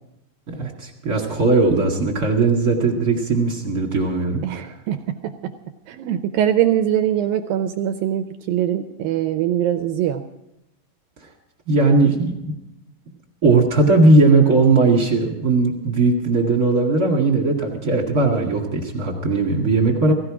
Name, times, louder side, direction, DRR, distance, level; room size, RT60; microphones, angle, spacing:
voice 1, 0.5-4.7 11.7-12.5 13.4-20.1, right 3 dB, 40° right, -1 dB, 1.4 m, -18 dB
voice 2, 4.4-5.3 5.9-10.2, right 11 dB, 80° right, 7 dB, 2.1 m, -22 dB
17.0 x 16.0 x 4.9 m, 0.88 s
omnidirectional pair, 4.7 m